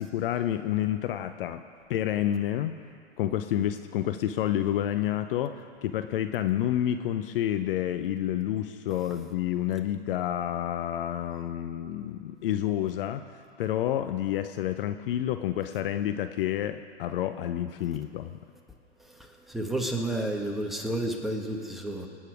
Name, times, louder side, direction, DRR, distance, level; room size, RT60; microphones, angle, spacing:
voice 1, 0.0-1.6 1.9-2.7 3.2-5.5 5.8-13.2 13.6-18.4, left 11 dB, 50° left, 9 dB, 0.7 m, -29 dB
voice 2, 19.2-22.1, right 1 dB, ahead, 1 dB, 1.6 m, -31 dB
26.0 x 8.9 x 4.9 m, 2.3 s
hypercardioid pair, 120°, 35 cm